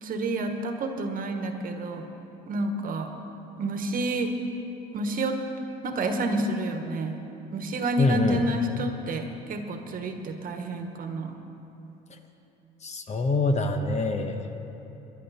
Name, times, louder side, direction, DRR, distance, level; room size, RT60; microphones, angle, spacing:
voice 1, 0.0-2.1 2.5-3.1 3.6-4.4 4.9-5.4 5.8-7.2 7.5-11.4, right 2 dB, 50° right, 5 dB, 1.4 m, -29 dB
voice 2, 8.0-8.4 12.8-14.4, left 3 dB, 40° left, 6 dB, 1.1 m, -25 dB
21.5 x 10.5 x 4.2 m, 2.9 s
supercardioid pair, 90°, 18 cm